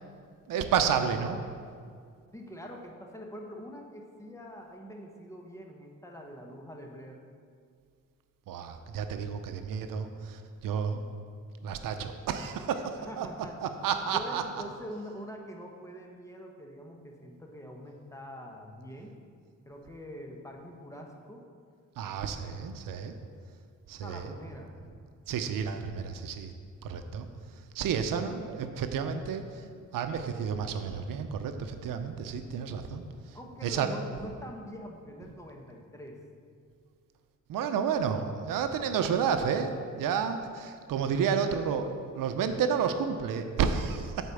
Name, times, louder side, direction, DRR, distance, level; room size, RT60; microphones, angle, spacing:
voice 1, 0.5-1.4 8.5-11.0 11.6-13.3 13.6-14.4 22.0-23.1 23.9-24.3 25.3-26.5 26.8-27.3 27.7-29.6 29.9-33.0 33.6-33.9 37.5-41.9 42.1-44.3, right 7 dB, 85° right, 8 dB, 0.6 m, -31 dB
voice 2, 2.3-7.2 12.9-13.6 14.1-19.1 19.7-21.4 24.0-24.7 33.3-36.2, equal, 10° left, 1 dB, 1.2 m, -44 dB
8.2 x 4.3 x 6.9 m, 2.1 s
cardioid pair, 90°, 32 cm